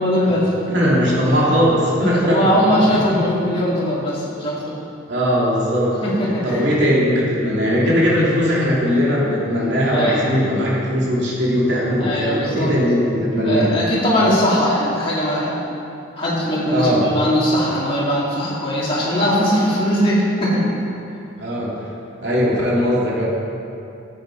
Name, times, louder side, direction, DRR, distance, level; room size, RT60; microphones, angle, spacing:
voice 1, 0.0-0.5 2.0-4.7 6.0-6.6 9.9-10.2 12.0-12.7 13.4-15.6 16.2-20.6 21.1-21.2, equal, 25° left, -8 dB, 2.7 m, -20 dB
voice 2, 0.7-2.5 2.9-3.2 5.1-6.0 6.4-13.7 16.7-17.1 21.4-21.7 22.2-23.3, equal, 55° right, -6 dB, 2.8 m, -19 dB
12.5 x 8.1 x 4.8 m, 2.7 s
head